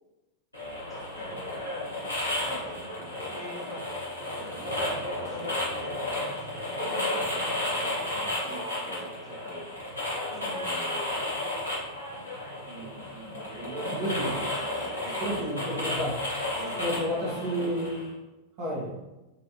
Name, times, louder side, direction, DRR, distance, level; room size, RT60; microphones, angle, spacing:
sound 1, 0.5-18.1, left 1 dB, 85° left, 1.1 m, -33 dB
voice 1, 0.9-1.6 2.2-3.7 4.2-9.6 10.1-11.6 12.6-15.8 16.5-16.9 17.3-17.9, right 1 dB, 5° left, -6 dB, 1.0 m, -44 dB
voice 2, 13.9-14.3 15.2-16.2 16.8-18.1 18.6-19.0, equal, 50° right, -4 dB, 1.1 m, -31 dB
3.9 x 2.2 x 2.9 m, 1.0 s
figure-of-eight pair, 90°, 0 cm